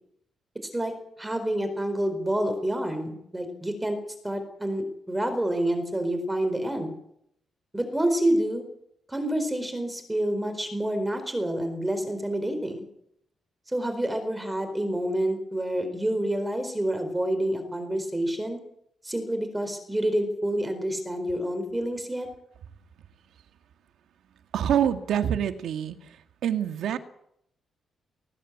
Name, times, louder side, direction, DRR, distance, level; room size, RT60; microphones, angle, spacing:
voice 1, 1.2-4.0 4.2-6.9 7.7-8.6 9.1-12.9 13.7-18.6 19.0-22.3, right 1 dB, 10° right, 7 dB, 4.3 m, -28 dB
voice 2, 24.5-26.2 26.4-27.0, right 9 dB, 80° right, 7 dB, 1.9 m, -26 dB
19.0 x 16.5 x 8.6 m, 0.74 s
cardioid pair, 125°, 0 cm